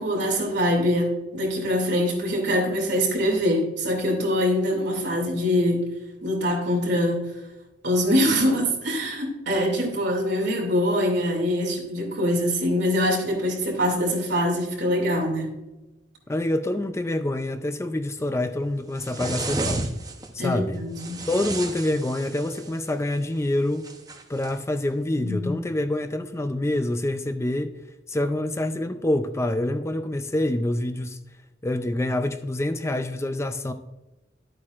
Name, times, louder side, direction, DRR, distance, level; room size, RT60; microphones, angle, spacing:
voice 1, 0.0-5.9 6.2-7.3 7.8-15.5 20.4-21.2 25.1-25.6, equal, 65° right, 0 dB, 2.5 m, -24 dB
voice 2, 16.3-19.9 20.3-20.8 21.3-23.9 24.3-27.7 28.1-31.2 31.6-33.7, left 1 dB, 15° left, 8 dB, 0.4 m, -26 dB
sound 1, 19.0-20.3 21.0-22.8 23.8-24.5, right 2 dB, 20° right, 0.8 m, -32 dB
12.0 x 8.4 x 2.5 m, 1.0 s
head